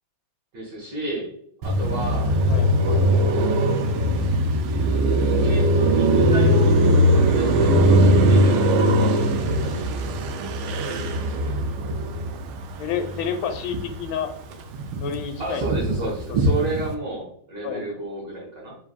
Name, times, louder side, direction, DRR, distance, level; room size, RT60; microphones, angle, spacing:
voice 1, 0.5-1.3 1.6-2.3 2.8-3.6 5.1-6.8 7.1-10.1 10.6-11.5 15.4-18.8, right 2 dB, 60° right, -4 dB, 1.9 m, -33 dB
Car passing by, 1.6-14.1 14.4-16.9, right 1 dB, 90° right, 1.5 m, -20 dB
voice 2, 12.8-14.3 15.0-15.7 16.3-16.4 17.6-17.9, left 7 dB, 80° left, 7 dB, 1.3 m, -29 dB
4.7 x 4.0 x 2.3 m, 0.64 s
omnidirectional pair, 2.2 m